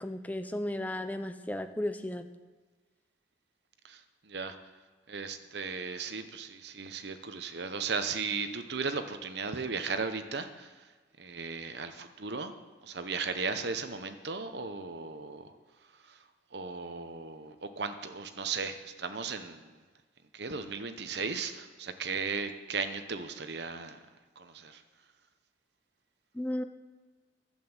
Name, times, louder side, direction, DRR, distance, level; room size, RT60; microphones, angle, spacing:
voice 1, 0.0-2.3 26.3-26.6, left 1 dB, 10° left, 9 dB, 0.5 m, -34 dB
voice 2, 3.8-4.6 5.1-10.9 11.2-12.6 12.8-15.5 15.9-16.2 16.5-19.7 20.3-24.0 24.4-24.8, right 4 dB, 60° right, 9 dB, 0.9 m, -36 dB
11.0 x 8.1 x 7.3 m, 1.4 s
head